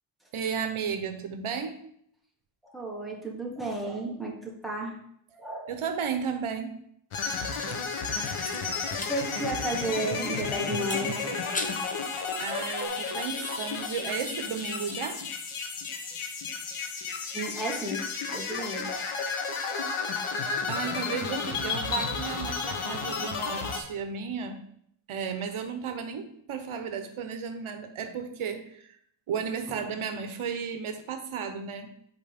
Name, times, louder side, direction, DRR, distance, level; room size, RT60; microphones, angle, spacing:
voice 1, 0.3-1.8 5.7-6.8 12.4-15.2 20.7-24.6 25.1-29.0 29.3-31.9, right 6 dB, 80° right, 6 dB, 0.8 m, -34 dB
voice 2, 2.7-5.0 5.3-5.8 9.1-11.3 17.3-19.1 19.5-19.9, right 1 dB, ahead, -3 dB, 1.3 m, -33 dB
sound 1, 7.1-23.8, left 5 dB, 85° left, 1.0 m, -32 dB
sound 2, 7.2-9.2 9.5-9.6 10.8-12.0 12.4-12.9, left 2 dB, 20° left, 0.5 m, -39 dB
8.2 x 4.2 x 3.5 m, 0.70 s
wide cardioid pair, 150°, 49 cm